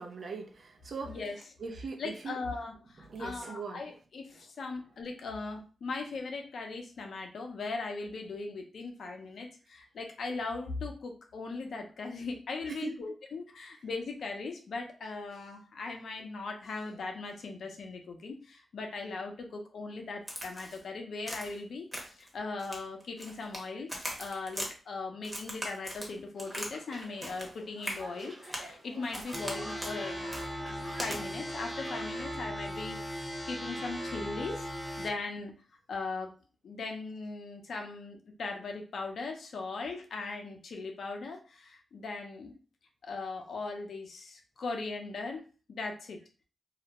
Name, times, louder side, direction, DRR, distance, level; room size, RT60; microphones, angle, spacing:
voice 1, 0.0-1.2 1.6-2.4 3.0-3.9 12.7-12.9, right 4 dB, 60° right, 3 dB, 0.5 m, -40 dB
voice 2, 2.0-23.9 24.2-30.3 30.7-35.5 35.9-36.3 36.6-42.5 43.0-45.4 45.7-46.2, left 3 dB, 70° left, 3 dB, 0.6 m, -39 dB
Crack, 20.3-20.8 21.3-21.6 21.9-22.3 22.6-23.6 23.9-24.7 25.2-26.7 27.0-27.5 27.8-28.0 28.5-28.7 29.1-29.5 29.8-30.0 30.3-30.5 31.0-31.2, equal, 15° right, 0.9 m, -39 dB
sound 1, 26.4-32.0, right 1 dB, 45° right, 1.1 m, -48 dB
sound 2, 29.3-35.1, equal, 10° left, 0.5 m, -38 dB
2.3 x 2.1 x 2.9 m, 0.36 s
cardioid pair, 80°, 0 cm